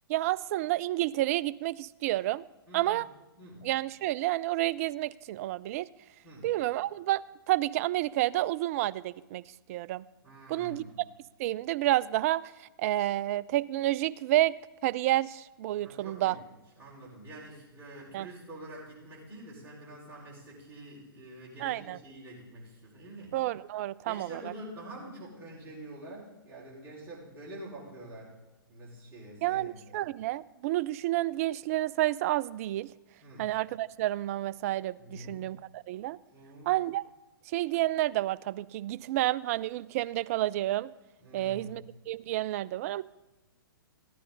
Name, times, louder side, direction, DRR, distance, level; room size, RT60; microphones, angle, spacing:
voice 1, 0.1-2.4 2.7-3.1 3.6-5.9 6.4-7.2 7.5-9.4 9.7-10.0 10.5-10.8 11.4-14.6 14.8-16.4 18.1-18.3 21.6-22.0 23.3-24.5 29.4-32.9 33.4-36.2 36.7-37.0 37.5-40.9 41.3-43.0, right 15 dB, 40° right, 18 dB, 0.3 m, -30 dB
voice 2, 3.4-3.7 6.2-6.5 10.2-10.9 15.8-16.4 16.8-23.4 24.0-28.4 28.7-29.8 33.2-33.5 35.0-35.4 36.3-36.7 41.2-41.8, right 1 dB, 20° right, -5 dB, 4.8 m, -46 dB
14.5 x 10.0 x 3.9 m, 1.1 s
hypercardioid pair, 125°, 12 cm